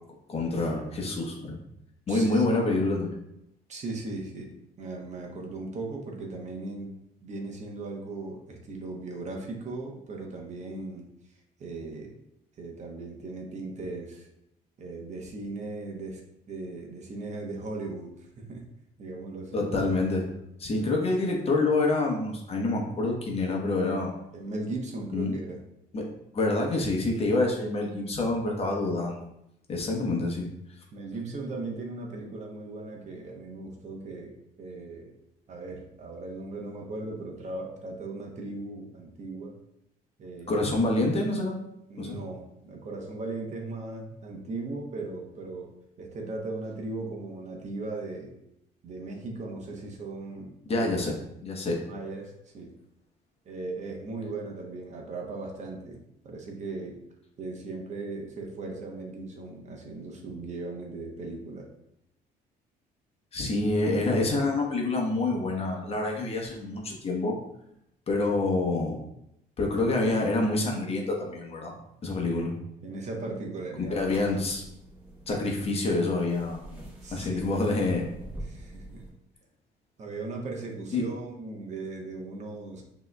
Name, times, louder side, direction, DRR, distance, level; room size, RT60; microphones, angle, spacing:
voice 1, 0.3-1.6 2.1-3.2 19.5-20.3 20.6-24.1 25.1-25.3 25.9-29.3 29.7-30.5 40.5-41.5 42.0-42.2 50.7-51.2 51.4-51.8 63.3-67.4 68.1-69.0 69.6-71.7 72.0-72.5 73.9-74.6 75.3-76.6 77.1-78.1 80.9-81.1, left 2 dB, 35° left, 0 dB, 0.9 m, -27 dB
voice 2, 2.1-2.6 3.7-4.5 4.8-6.9 7.2-11.1 11.6-12.1 12.6-14.3 14.8-16.2 16.5-18.6 19.0-19.6 20.7-20.9 24.3-25.6 29.9-30.2 30.9-35.1 35.5-39.6 40.2-40.6 41.9-45.7 46.0-48.3 48.8-50.9 51.9-52.7 53.5-57.0 57.4-61.7 72.8-74.0 77.0-77.5 78.4-79.0 80.0-82.8, right 3 dB, 45° right, 1 dB, 0.8 m, -38 dB
sound 1, 73.8-79.1, right 1 dB, 10° right, 1.3 m, -45 dB
6.0 x 2.9 x 2.2 m, 0.80 s
cardioid pair, 110°, 17 cm